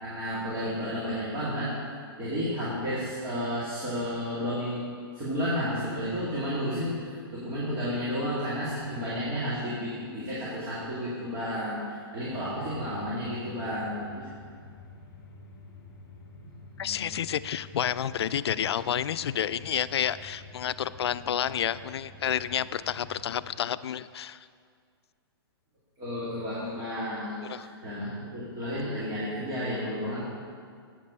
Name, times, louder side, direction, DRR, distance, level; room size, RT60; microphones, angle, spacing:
voice 1, 0.0-1.7 2.2-4.8 5.1-14.3 16.8-17.0 26.0-30.2, equal, 20° right, -9 dB, 2.2 m, -32 dB
sound 1, 12.3-23.5, left 2 dB, 45° left, 2.9 m, -49 dB
voice 2, 16.8-24.4 27.4-27.7, left 9 dB, 85° left, 16 dB, 0.4 m, -30 dB
8.6 x 7.5 x 6.7 m, 2.1 s
hypercardioid pair, 160°, 13 cm